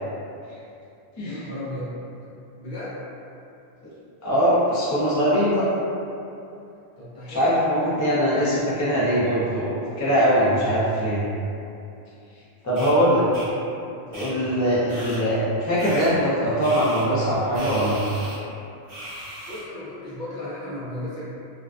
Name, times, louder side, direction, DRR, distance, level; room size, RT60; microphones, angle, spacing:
voice 1, 1.2-1.9 2.6-3.0 7.0-7.5 19.5-21.3, left 1 dB, 55° left, -9 dB, 0.7 m, -34 dB
voice 2, 4.2-5.7 7.3-11.2 12.6-13.2 14.1-18.0, equal, 30° left, -9 dB, 0.3 m, -21 dB
sound 1, 12.8-12.9 13.3-13.5 14.1-14.3 14.9-15.2 15.8-16.1 16.6-17.0 17.5-18.4 18.9-19.6, right 1 dB, 45° right, 0.8 m, -37 dB
2.4 x 2.2 x 2.3 m, 2.7 s
omnidirectional pair, 1.1 m